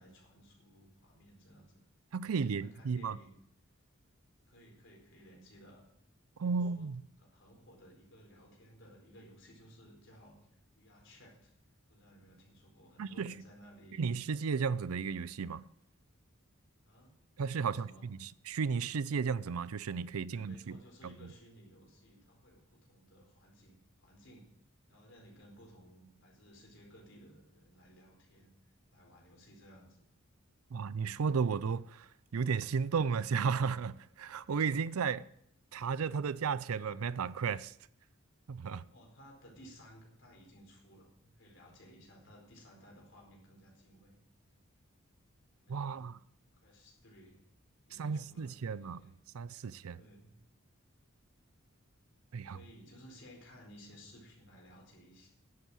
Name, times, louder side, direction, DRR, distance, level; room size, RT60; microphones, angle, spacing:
voice 1, 0.0-1.8 2.2-3.4 4.5-5.9 6.4-6.9 7.2-10.4 10.7-11.5 11.9-14.0 16.8-17.1 17.6-18.1 20.3-24.5 24.9-28.5 28.9-30.1 38.9-44.2 45.2-45.3 45.6-46.1 46.6-47.4 47.9-49.3 49.9-50.3 52.4-55.3, equal, 60° left, 4.5 m, -58 dB
voice 2, 2.1-3.2 6.4-7.0 13.0-13.3 14.0-15.7 17.4-21.1 30.7-32.1 32.3-35.3 35.7-37.7 38.5-38.8 45.7-46.2 47.9-49.0 49.3-50.0 52.3-52.6, right 5 dB, 90° right, 0.5 m, -34 dB
11.0 x 8.1 x 7.3 m
head